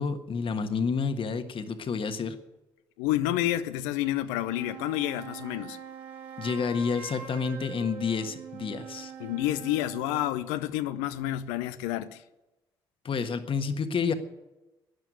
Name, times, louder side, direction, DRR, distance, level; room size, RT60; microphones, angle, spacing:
voice 1, 0.0-2.4 6.4-9.1 13.0-14.1, left 5 dB, 50° left, 1.5 m, -29 dB
voice 2, 3.0-5.8 9.2-12.2, left 14 dB, 75° left, 0.6 m, -29 dB
sound 1, 4.2-10.4, right 6 dB, 70° right, 3.7 m, -43 dB
13.0 x 10.5 x 9.7 m
hypercardioid pair, 45°, 12 cm